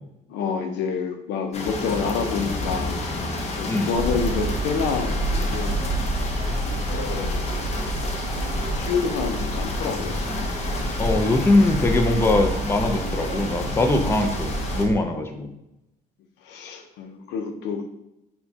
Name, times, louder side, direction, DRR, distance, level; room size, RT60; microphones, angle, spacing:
voice 1, 0.3-5.1 5.4-5.7 6.9-7.6 8.5-10.1 16.4-17.9, left 5 dB, 85° left, 5 dB, 0.6 m, -28 dB
sound 1, 1.5-14.8, left 3 dB, 40° left, 0.8 m, -32 dB
sound 2, 3.9-14.9, right 1 dB, 80° right, 0.5 m, -28 dB
voice 2, 11.0-15.5, left 2 dB, 15° left, 5 dB, 0.5 m, -21 dB
6.7 x 2.3 x 2.7 m, 0.86 s
cardioid pair, 110°, 17 cm